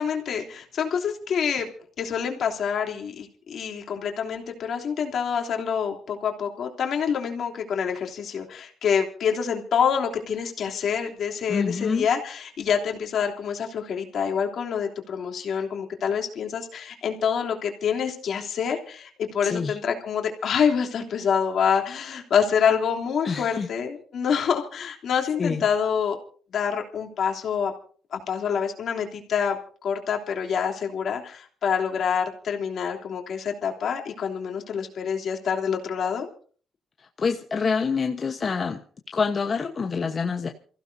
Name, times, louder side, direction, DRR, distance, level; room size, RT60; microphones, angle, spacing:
voice 1, 0.0-1.7 2.0-26.2 26.5-27.7 28.1-29.6 29.8-36.3, left 7 dB, 65° left, 2 dB, 3.1 m, -26 dB
voice 2, 11.5-12.1 19.4-19.8 23.2-23.7 24.3-24.4 25.4-25.6 37.0-38.8 39.1-40.5, left 5 dB, 40° left, 5 dB, 1.1 m, -26 dB
27.5 x 15.5 x 2.7 m, 0.43 s
cardioid pair, 90°, 0 cm